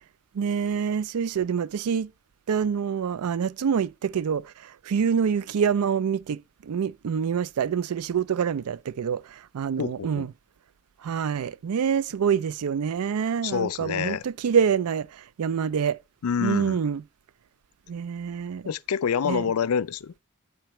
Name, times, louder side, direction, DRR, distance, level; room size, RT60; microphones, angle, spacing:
voice 1, 0.3-2.1 2.5-10.3 11.0-16.0 16.4-17.0 17.9-18.7 19.2-19.5, right 7 dB, 85° right, 0.4 m, -26 dB
voice 2, 9.8-10.3 13.4-14.2 16.2-16.8 18.7-20.1, left 7 dB, 80° left, 0.4 m, -27 dB
8.9 x 7.9 x 3.0 m
head